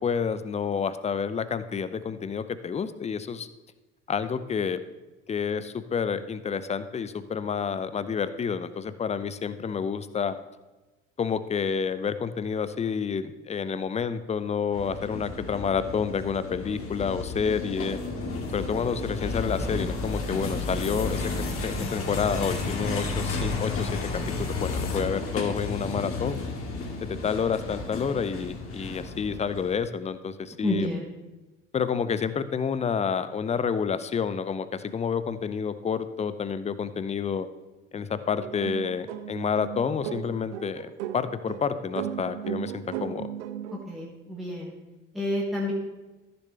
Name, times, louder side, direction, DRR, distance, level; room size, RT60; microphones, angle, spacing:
voice 1, 0.0-3.5 4.1-4.8 5.3-10.4 11.2-18.0 18.5-21.2 21.6-23.9 24.4-26.4 27.0-30.9 31.7-37.5 37.9-43.3, left 6 dB, 20° left, 13 dB, 0.6 m, -29 dB
sound 1, 14.7-29.8, left 3 dB, 40° left, 2.0 m, -32 dB
voice 2, 30.6-31.0 43.7-44.7 45.1-45.7, left 1 dB, ahead, -4 dB, 2.0 m, -29 dB
sound 2, 38.4-43.8, right 10 dB, 70° right, 0.7 m, -36 dB
14.5 x 6.9 x 3.3 m, 1.1 s
figure-of-eight pair, 55°, 35 cm